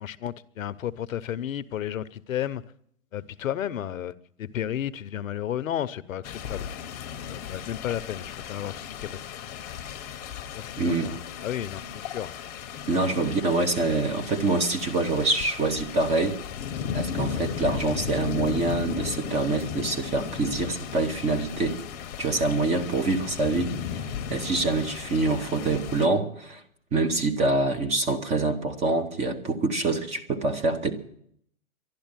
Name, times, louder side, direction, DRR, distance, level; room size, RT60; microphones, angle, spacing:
voice 1, 0.0-2.6 3.1-6.7 7.2-9.2 10.6-11.2 11.4-12.3 13.0-13.3, left 10 dB, 65° left, 0.8 m, -33 dB
sound 1, 6.2-26.1, left 8 dB, 30° left, 0.9 m, -36 dB
voice 2, 10.8-11.1 12.9-16.4 16.9-21.8 22.2-26.6 26.9-30.9, right 3 dB, 15° right, 0.9 m, -25 dB
12.0 x 11.5 x 9.0 m
hypercardioid pair, 145°, 43 cm